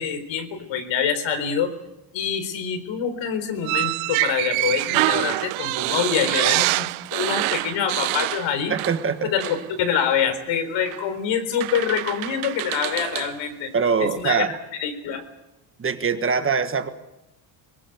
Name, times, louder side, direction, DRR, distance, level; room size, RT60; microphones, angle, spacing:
voice 1, 0.0-1.7 2.1-6.9 7.1-8.7 9.2-13.7 14.0-15.2, left 7 dB, 65° left, 9 dB, 4.1 m, -25 dB
sound 1, 3.6-9.1 9.4-9.6 10.9-11.0 11.6-13.3, right 22 dB, 85° right, 0.7 m, -25 dB
voice 2, 8.7-9.3 13.7-14.5 15.8-16.9, right 6 dB, 25° right, 8 dB, 1.5 m, -23 dB
23.0 x 21.5 x 7.9 m, 0.94 s
cardioid pair, 140°, 47 cm